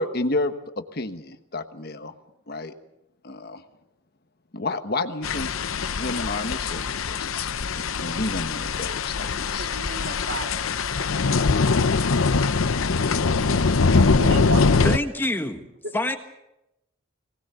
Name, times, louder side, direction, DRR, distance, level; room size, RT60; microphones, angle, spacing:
voice 1, 0.0-2.1 2.5-2.7 3.2-3.6 4.5-7.5 7.7-9.7, left 2 dB, 50° left, 8 dB, 1.2 m, -31 dB
sound 1, 5.2-15.0, left 4 dB, 80° left, 0.7 m, -22 dB
voice 2, 9.6-10.7 11.2-12.6 14.2-14.9, right 3 dB, 60° right, 4 dB, 2.4 m, -36 dB
voice 3, 14.8-15.7 15.9-16.2, left 1 dB, 10° left, 5 dB, 1.4 m, -26 dB
23.5 x 19.0 x 6.9 m, 0.87 s
head